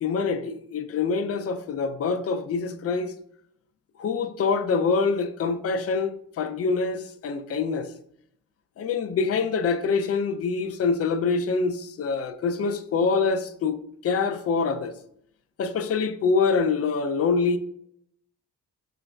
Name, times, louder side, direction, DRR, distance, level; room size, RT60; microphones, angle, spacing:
voice 1, 0.0-3.1 4.0-7.9 8.8-13.8 14.0-14.9 15.6-17.6, left 4 dB, 35° left, 0.4 m, -25 dB
3.1 x 2.1 x 2.4 m
hypercardioid pair, 40°, 41 cm